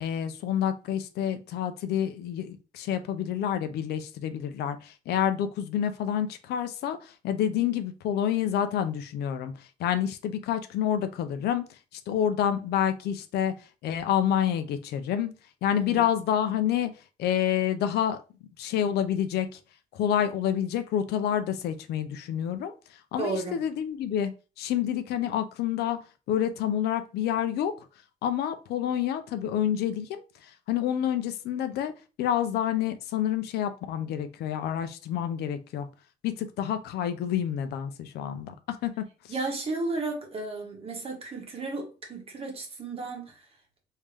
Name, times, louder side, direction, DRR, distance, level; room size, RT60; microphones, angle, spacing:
voice 1, 0.0-13.5 13.8-15.3 15.6-16.9 17.2-18.2 18.6-19.6 19.9-24.3 24.6-26.0 26.3-27.7 28.2-31.9 32.2-35.9 36.2-39.3, left 10 dB, 75° left, 0.5 m, -28 dB
voice 2, 15.7-16.1 23.2-23.6 39.3-43.5, right 3 dB, 35° right, 1.2 m, -33 dB
3.5 x 2.7 x 3.2 m
cardioid pair, 110°, 17 cm